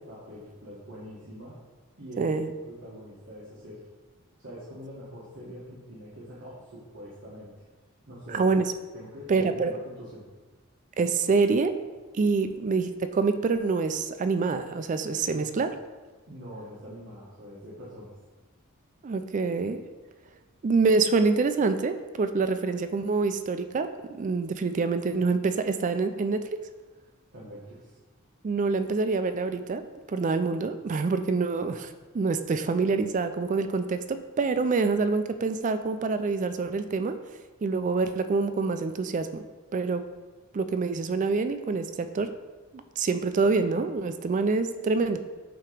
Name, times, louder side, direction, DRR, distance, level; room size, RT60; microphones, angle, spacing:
voice 1, 0.1-1.6 2.0-2.3 2.6-3.9 4.4-7.5 8.1-8.5 8.9-10.3 15.2-15.7 16.3-18.1 27.3-28.0, equal, 55° right, -8 dB, 1.3 m, -44 dB
voice 2, 2.2-2.5 8.3-8.7 9.3-9.7 11.0-11.7 12.1-15.7 19.0-19.8 20.6-26.4 28.4-29.8 30.1-37.2 37.6-39.4 39.7-40.0 40.5-42.3 42.7-45.2, right 4 dB, 35° right, 9 dB, 0.3 m, -26 dB
7.6 x 2.9 x 4.9 m, 1.3 s
head